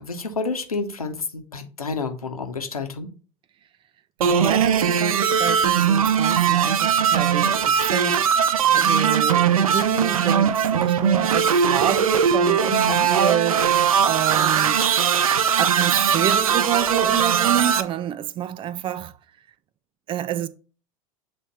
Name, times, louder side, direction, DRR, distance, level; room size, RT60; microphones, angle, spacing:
voice 1, 0.0-3.1 12.7-13.1, left 3 dB, 85° left, 1.1 m, -29 dB
voice 2, 4.2-8.5 8.8-14.9 15.6-19.1 20.1-20.5, right 11 dB, 30° right, 0.5 m, -28 dB
sound 1, 4.2-17.8, right 7 dB, 75° right, 0.5 m, -20 dB
7.4 x 3.4 x 4.2 m
figure-of-eight pair, 80°, 18 cm